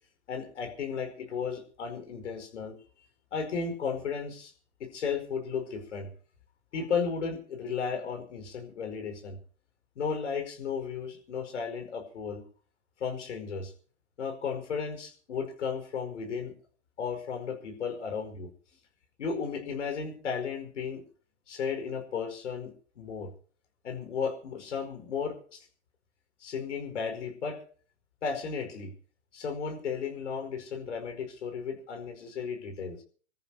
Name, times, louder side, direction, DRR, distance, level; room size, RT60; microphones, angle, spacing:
voice 1, 0.3-2.7 3.3-4.5 4.9-6.1 6.7-9.4 9.9-12.4 13.0-13.7 14.2-16.5 17.0-18.5 19.2-21.0 21.5-23.3 23.8-25.6 26.4-27.6 28.2-28.9 29.3-33.0, left 6 dB, 75° left, 5 dB, 5.1 m, -34 dB
27.0 x 14.0 x 2.8 m, 0.43 s
hypercardioid pair, 105°, 36 cm